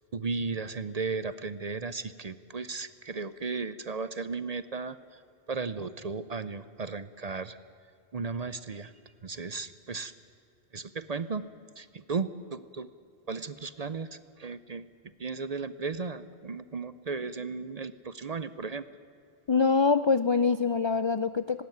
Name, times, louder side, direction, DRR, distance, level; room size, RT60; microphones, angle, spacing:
voice 1, 0.1-5.2 5.5-7.6 8.1-8.9 9.2-10.1 10.7-11.4 11.8-12.9 13.3-14.9 15.2-18.9, right 4 dB, 45° right, 15 dB, 0.7 m, -35 dB
voice 2, 19.5-21.6, left 5 dB, 45° left, 13 dB, 0.4 m, -24 dB
18.5 x 18.0 x 9.3 m, 2.5 s
omnidirectional pair, 1.1 m